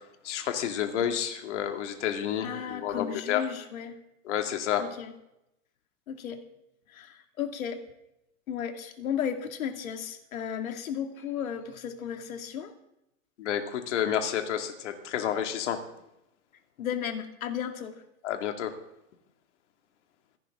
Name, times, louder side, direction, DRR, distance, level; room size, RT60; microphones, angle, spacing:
voice 1, 0.2-3.4 4.3-4.8 13.4-15.8 18.2-18.7, left 9 dB, 55° left, 6 dB, 2.4 m, -30 dB
voice 2, 2.4-4.0 4.8-5.1 6.1-6.5 6.9-7.9 8.5-12.7 16.8-18.0, left 8 dB, 75° left, 7 dB, 2.4 m, -34 dB
26.0 x 11.5 x 3.7 m, 0.85 s
supercardioid pair, 165°, 41 cm